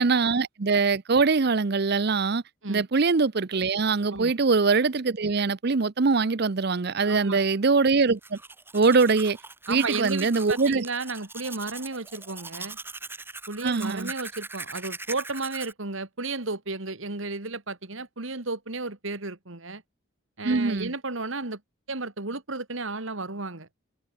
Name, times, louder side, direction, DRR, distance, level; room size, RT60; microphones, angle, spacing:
voice 1, 0.0-2.4 2.7-8.4 8.7-9.4 9.7-10.8 13.6-14.1 20.4-20.9, right 4 dB, 50° right, 0.6 m, -23 dB
voice 2, 7.0-7.5 9.7-12.8 13.5-19.8 20.4-21.6 21.9-23.7, right 3 dB, 65° right, 2.3 m, -33 dB
Domestic sounds home sounds, 8.0-15.7, right 3 dB, 10° right, 5.6 m, -41 dB
head